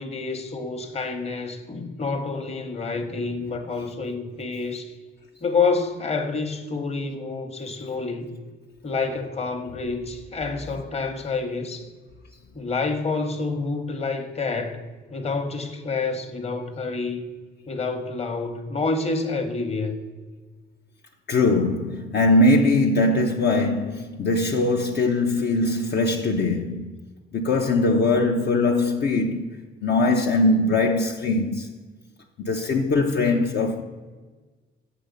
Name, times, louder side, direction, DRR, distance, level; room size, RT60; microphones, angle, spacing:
voice 1, 0.0-4.9 5.4-8.3 8.8-11.9 12.5-14.8 15.1-17.3 17.7-20.0, left 4 dB, 30° left, 1.1 m, -28 dB
voice 2, 21.3-26.9 27.3-29.4 29.8-31.7 32.4-33.8, left 2 dB, 55° left, 0.7 m, -21 dB
7.7 x 5.6 x 5.2 m
cardioid pair, 90°, 20 cm